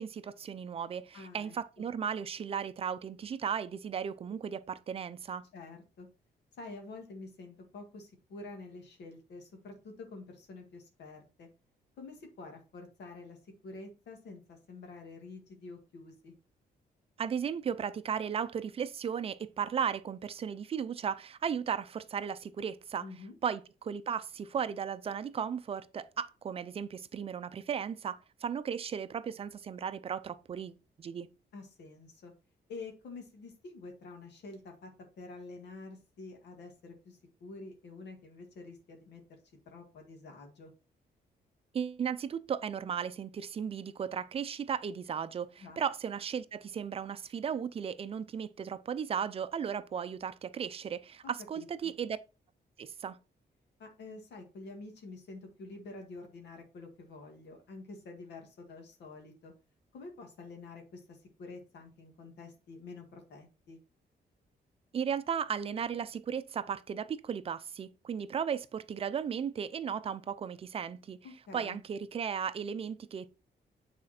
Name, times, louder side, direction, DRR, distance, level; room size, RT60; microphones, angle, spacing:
voice 1, 0.0-5.4 17.2-23.1 23.4-31.3 41.7-52.2 52.8-53.2 64.9-71.2 71.5-73.3, right 7 dB, 35° right, 0.5 m, -35 dB
voice 2, 1.1-1.9 5.5-6.1 6.5-11.5 12.0-16.3 23.0-23.4 31.5-32.3 32.7-34.9 35.2-39.2 39.7-40.7 45.6-45.8 51.2-51.9 53.8-59.5 59.9-63.8 71.2-71.8, left 3 dB, 85° left, 1.8 m, -48 dB
8.9 x 4.2 x 4.2 m
wide cardioid pair, 180°, 17 cm